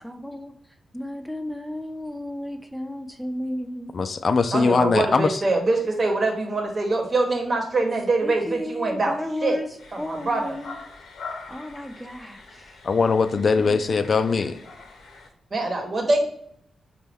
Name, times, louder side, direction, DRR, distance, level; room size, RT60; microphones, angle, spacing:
voice 1, 0.0-0.5 0.9-3.9 8.2-9.7 10.0-10.8 11.5-12.8 13.5-14.1, left 1 dB, 5° right, 5 dB, 0.5 m, -33 dB
voice 2, 3.9-5.4 12.8-14.6, left 4 dB, 55° left, 10 dB, 0.3 m, -21 dB
voice 3, 4.5-9.1 9.4-9.6 9.9-10.6 15.5-16.2, right 2 dB, 50° right, 3 dB, 1.0 m, -24 dB
sound 1, 9.8-15.3, left 4 dB, 80° left, 0.7 m, -43 dB
5.1 x 2.2 x 3.4 m, 0.71 s
supercardioid pair, 50°, 0 cm